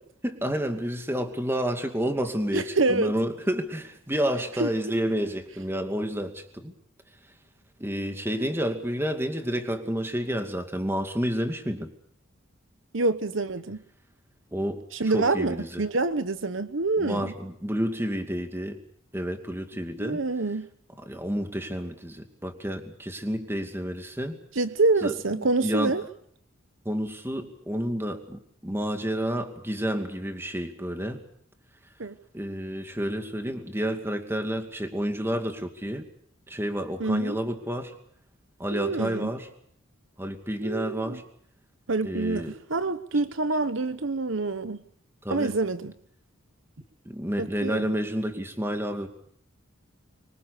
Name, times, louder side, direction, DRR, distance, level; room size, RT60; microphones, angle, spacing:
voice 1, 0.2-6.7 7.8-11.9 14.5-15.8 17.0-18.8 19.1-20.2 21.0-24.4 25.0-26.0 26.8-31.2 32.3-36.1 36.5-37.9 38.6-39.5 40.2-41.2 42.0-42.5 45.2-45.5 47.1-49.1, equal, 10° right, 6 dB, 2.5 m, -30 dB
voice 2, 2.5-3.1 4.6-4.7 12.9-13.8 14.9-17.3 20.0-20.7 24.6-26.0 32.0-32.1 37.0-37.4 38.7-39.3 40.6-41.2 41.9-44.8 45.3-45.9 47.4-47.9, right 3 dB, 65° right, 12 dB, 1.0 m, -26 dB
24.5 x 24.0 x 6.7 m, 0.66 s
head